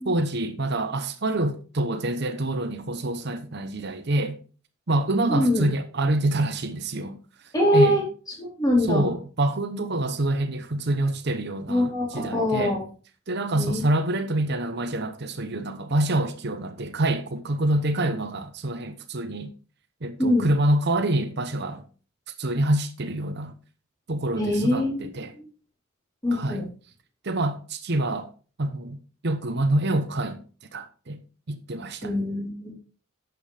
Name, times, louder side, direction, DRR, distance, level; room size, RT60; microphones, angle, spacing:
voice 1, 0.0-4.4 4.9-7.2 7.7-8.0 8.8-12.8 13.3-19.5 20.0-21.8 22.4-23.5 24.1-25.3 26.3-26.6 27.2-28.3 28.6-29.0 29.2-30.4 30.7-31.2 31.5-32.1, right 1 dB, 55° right, 0.9 m, -26 dB
voice 2, 5.3-5.7 7.5-8.0 8.4-9.1 11.7-12.8 13.6-13.9 20.2-20.5 24.4-25.1 26.2-26.7 32.0-32.7, left 1 dB, 20° left, 4.2 m, -23 dB
11.5 x 8.0 x 3.4 m
head